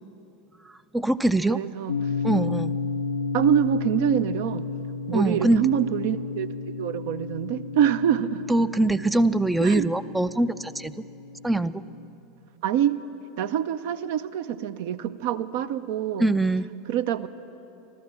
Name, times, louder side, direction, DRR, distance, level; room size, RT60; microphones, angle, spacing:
voice 1, 0.9-1.6 2.2-2.7 5.1-5.7 8.5-10.9 11.4-11.8 16.2-16.7, right 2 dB, 5° right, 13 dB, 0.3 m, -23 dB
voice 2, 1.5-1.9 3.3-4.6 5.1-8.4 9.6-9.9 12.6-13.0 13.4-16.3 16.9-17.3, right 10 dB, 60° right, 12 dB, 0.5 m, -25 dB
sound 1, 1.9-12.1, left 4 dB, 85° left, 0.4 m, -32 dB
13.5 x 12.5 x 7.5 m, 2.8 s
figure-of-eight pair, 85°, 0 cm